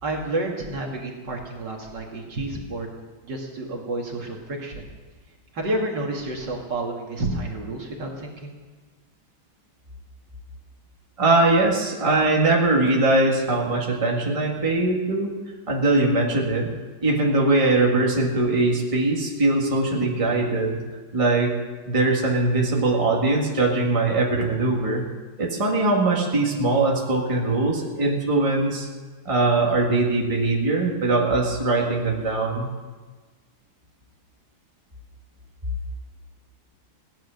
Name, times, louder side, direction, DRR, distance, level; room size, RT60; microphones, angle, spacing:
voice 1, 0.0-2.9 3.3-4.9 5.5-8.6, right 2 dB, 55° right, 0 dB, 2.6 m, -30 dB
voice 2, 11.2-15.4 15.7-16.7 17.0-20.8 21.1-21.5 21.9-25.0 25.4-28.9 29.3-32.7, right 2 dB, 15° right, -2 dB, 1.9 m, -21 dB
17.0 x 10.5 x 6.5 m, 1.3 s
omnidirectional pair, 2.2 m